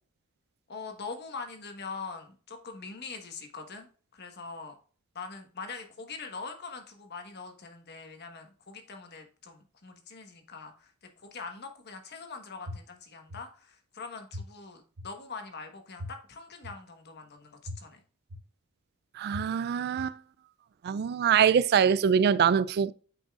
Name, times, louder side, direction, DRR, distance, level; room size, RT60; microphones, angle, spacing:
voice 1, 0.7-3.9 4.1-4.8 5.1-18.0, left 4 dB, 50° left, 1.3 m, -43 dB
sound 1, 12.7-12.8 13.3-13.4 14.3-14.4 15.0-15.1 16.0-16.1 16.6-16.7 17.7-17.8 18.3-18.4 19.3-19.4 20.0-20.1, equal, 85° right, 0.9 m, -38 dB
voice 2, 19.2-20.2 20.8-22.9, right 7 dB, 45° right, 0.3 m, -24 dB
9.0 x 5.3 x 2.4 m
head